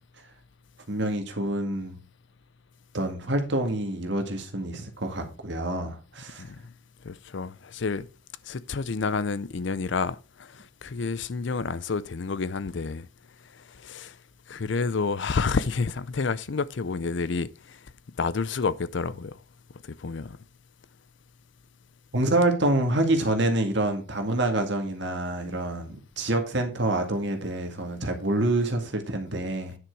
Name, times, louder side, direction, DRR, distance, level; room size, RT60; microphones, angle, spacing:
voice 1, 0.9-2.0 2.9-6.4 22.1-29.8, right 1 dB, 55° right, 2.0 m, -27 dB
voice 2, 7.0-8.1 8.5-13.1 13.8-14.2 14.5-17.8 18.2-19.4 19.8-20.4, left 4 dB, 60° left, 0.5 m, -29 dB
9.8 x 6.1 x 4.7 m
head